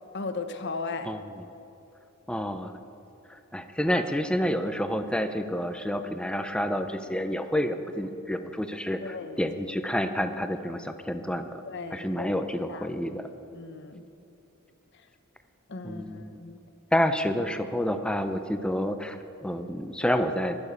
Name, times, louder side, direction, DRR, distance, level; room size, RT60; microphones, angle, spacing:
voice 1, 0.1-1.1 9.0-9.5 11.6-12.3 12.7-13.0 13.5-14.0 15.7-16.6, left 3 dB, 55° left, 9 dB, 0.9 m, -36 dB
voice 2, 2.3-2.8 3.3-11.6 11.9-13.3 15.8-16.4 16.9-20.6, equal, 5° left, 8 dB, 0.6 m, -29 dB
20.5 x 7.2 x 6.6 m, 2.9 s
head